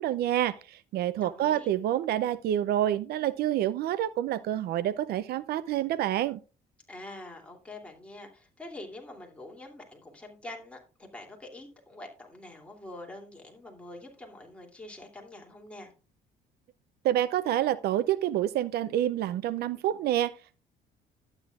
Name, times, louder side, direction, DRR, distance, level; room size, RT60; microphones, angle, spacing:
voice 1, 0.0-6.4 17.0-20.6, right 12 dB, 70° right, 0.5 m, -28 dB
voice 2, 1.2-1.7 6.9-15.9, left 1 dB, 5° left, 2.7 m, -45 dB
12.0 x 9.0 x 2.4 m
cardioid pair, 110°, 17 cm